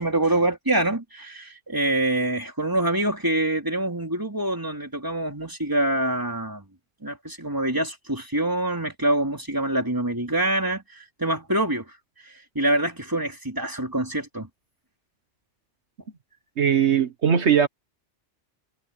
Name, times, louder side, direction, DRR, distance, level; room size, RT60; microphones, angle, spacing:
voice 1, 0.0-6.6 7.0-12.0 12.2-14.5, right 1 dB, 15° right, 3.7 m, -25 dB
voice 2, 16.6-17.7, right 8 dB, 75° right, 1.5 m, -19 dB
omnidirectional pair, 1.2 m